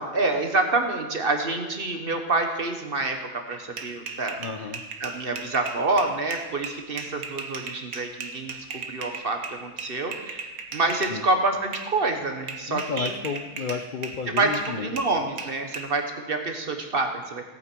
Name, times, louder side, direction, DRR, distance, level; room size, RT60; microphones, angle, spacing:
voice 1, 0.0-4.4 5.0-10.4 10.7-13.1 14.3-17.4, right 2 dB, 40° right, 4 dB, 1.3 m, -27 dB
sound 1, 3.5-11.2 11.7-11.9 12.5-15.9, right 5 dB, 75° right, 1.5 m, -37 dB
voice 2, 4.4-4.8 11.1-11.2 12.7-14.9, left 5 dB, 45° left, 5 dB, 0.6 m, -32 dB
18.0 x 8.7 x 4.6 m, 1.2 s
omnidirectional pair, 1.5 m